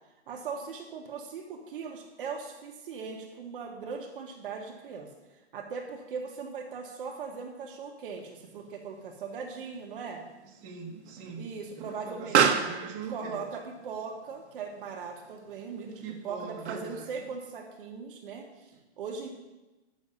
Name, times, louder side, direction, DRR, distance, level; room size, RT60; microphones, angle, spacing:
voice 1, 0.3-5.1 5.5-10.2 11.4-12.4 13.1-19.3, right 5 dB, 50° right, 2 dB, 1.2 m, -39 dB
Explosion, 8.1-17.2, right 7 dB, 75° right, 1.1 m, -33 dB
voice 2, 10.6-11.5 11.7-13.5 16.0-17.1 18.7-18.8, right 5 dB, 20° right, -2 dB, 1.4 m, -42 dB
9.6 x 6.3 x 5.4 m, 1.1 s
hypercardioid pair, 155°, 34 cm